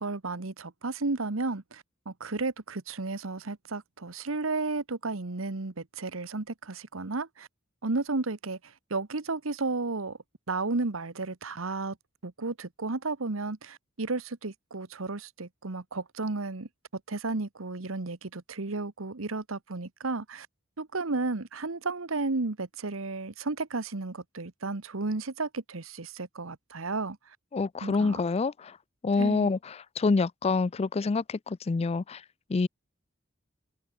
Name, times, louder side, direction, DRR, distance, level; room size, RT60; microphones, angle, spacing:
voice 1, 0.0-7.5 7.8-10.2 10.5-12.0 12.2-16.7 17.1-20.5 20.8-27.2 27.8-28.2 29.2-29.5, right 3 dB, 80° right, 1.2 m, -33 dB
voice 2, 27.5-28.8 29.0-32.2 32.5-32.7, left 4 dB, 30° left, 0.4 m, -27 dB
head